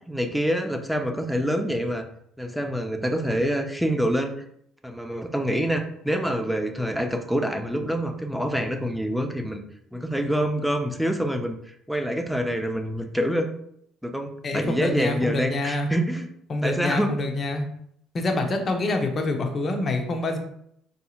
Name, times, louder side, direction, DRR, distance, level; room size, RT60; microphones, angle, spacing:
voice 1, 0.1-2.1 2.4-4.3 4.8-9.6 9.9-13.5 14.0-16.3 16.6-17.2, equal, ahead, 5 dB, 0.5 m, -26 dB
voice 2, 14.4-15.9 16.5-17.7 18.1-20.4, left 2 dB, 35° left, 4 dB, 0.7 m, -26 dB
4.1 x 2.7 x 2.4 m, 0.69 s
supercardioid pair, 85°, 0 cm